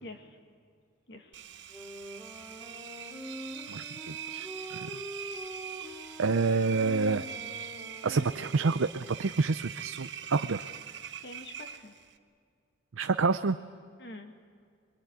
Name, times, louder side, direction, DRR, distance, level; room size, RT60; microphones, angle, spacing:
voice 1, 0.0-0.4 1.1-1.4 8.0-8.3 11.2-11.9 14.0-14.3, left 1 dB, 55° left, 5 dB, 2.0 m, -46 dB
Engine, 1.3-12.2, right 9 dB, 60° right, 1.1 m, -43 dB
Wind instrument woodwind instrument, 1.6-9.3, equal, 5° left, 4.0 m, -45 dB
voice 2, 3.7-4.5 4.7-4.9 6.2-7.3 8.0-10.7 13.0-13.6, right 4 dB, 90° right, 9 dB, 0.6 m, -28 dB
23.0 x 22.5 x 9.8 m, 2.1 s
head